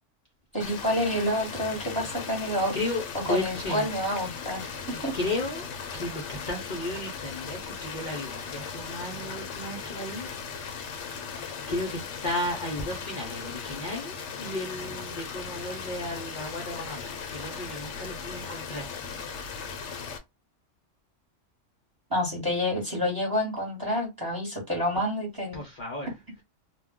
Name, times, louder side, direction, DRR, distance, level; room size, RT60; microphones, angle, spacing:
voice 1, 0.5-2.8 3.2-5.1 22.1-25.6, left 1 dB, 20° right, 1.0 m, -28 dB
sound 1, 0.6-20.2, left 6 dB, 70° left, 0.9 m, -38 dB
voice 2, 2.7-3.9 4.9-10.3 11.7-19.0 25.5-26.1, left 1 dB, 50° left, 0.6 m, -34 dB
2.3 x 2.2 x 3.5 m
omnidirectional pair, 1.3 m